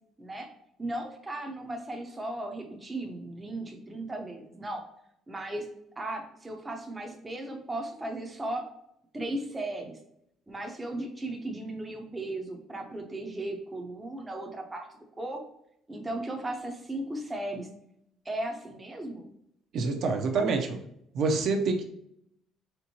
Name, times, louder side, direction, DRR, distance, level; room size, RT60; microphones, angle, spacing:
voice 1, 0.8-4.8 5.3-5.7 6.0-8.7 9.1-10.0 10.5-15.4 15.9-17.7 18.2-19.3, right 1 dB, 10° right, 1 dB, 0.6 m, -36 dB
voice 2, 19.7-20.8 21.1-21.8, right 4 dB, 50° right, 4 dB, 0.6 m, -26 dB
4.4 x 3.6 x 2.8 m, 0.74 s
cardioid pair, 165°, 0 cm